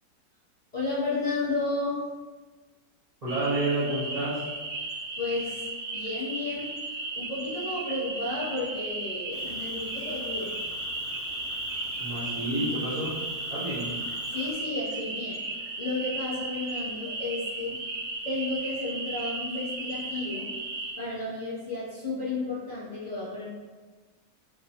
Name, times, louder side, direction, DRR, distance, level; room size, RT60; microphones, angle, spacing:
voice 1, 0.7-2.0 5.2-6.7 7.1-10.6 14.3-15.4 15.7-17.8 18.2-20.5 21.0-23.5, left 2 dB, 35° left, -12 dB, 0.8 m, -32 dB
voice 2, 3.2-4.4 12.0-13.2 13.5-13.9, right 1 dB, 40° right, -12 dB, 0.5 m, -29 dB
sound 1, 3.3-20.9, right 2 dB, 70° right, 0.9 m, -35 dB
Cricket, 9.3-14.5, left 1 dB, 65° left, 0.5 m, -39 dB
2.7 x 2.2 x 2.8 m, 1.3 s
omnidirectional pair, 1.7 m